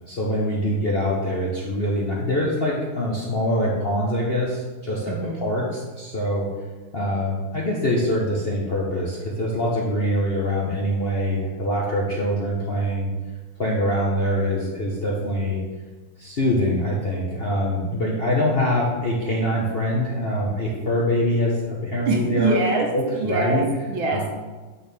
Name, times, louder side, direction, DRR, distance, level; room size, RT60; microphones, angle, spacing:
voice 1, 0.0-6.5 6.9-13.1 13.6-15.6 16.2-22.5 22.9-23.6 24.1-24.2, left 1 dB, 50° left, -4 dB, 0.7 m, -24 dB
voice 2, 5.1-5.5 22.1-24.3, right 3 dB, 75° right, 1 dB, 1.9 m, -24 dB
9.2 x 4.2 x 3.5 m, 1.3 s
omnidirectional pair, 2.3 m